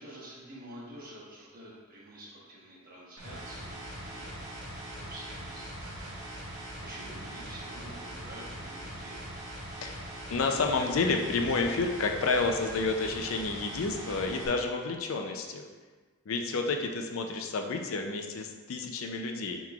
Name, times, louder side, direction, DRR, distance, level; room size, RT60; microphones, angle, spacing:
voice 1, 0.0-4.4 4.7-5.9 6.5-9.2, right 1 dB, 45° right, -5 dB, 1.1 m, -48 dB
sound 1, 3.2-14.5, right 1 dB, 85° right, 1.1 m, -42 dB
voice 2, 10.3-15.6 16.3-19.6, left 3 dB, 70° left, 4 dB, 0.5 m, -30 dB
7.3 x 3.1 x 2.3 m, 1.3 s
head